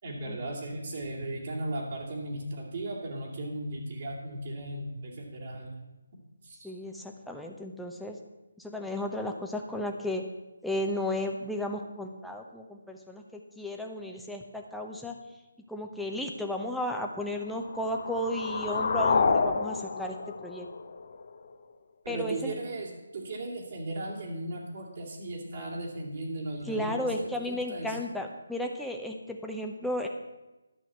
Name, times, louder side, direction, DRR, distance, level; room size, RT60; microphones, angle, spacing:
voice 1, 0.0-5.8 6.4-6.7 22.0-28.0, right 1 dB, 50° right, -3 dB, 2.8 m, -36 dB
voice 2, 6.6-8.2 8.6-10.2 10.6-15.2 15.7-20.2 20.4-20.7 22.1-22.5 26.7-30.1, left 1 dB, ahead, 1 dB, 0.9 m, -34 dB
sound 1, 17.5-21.5, left 4 dB, 50° left, 1.1 m, -29 dB
11.0 x 5.8 x 7.9 m, 1.1 s
figure-of-eight pair, 155°, 0 cm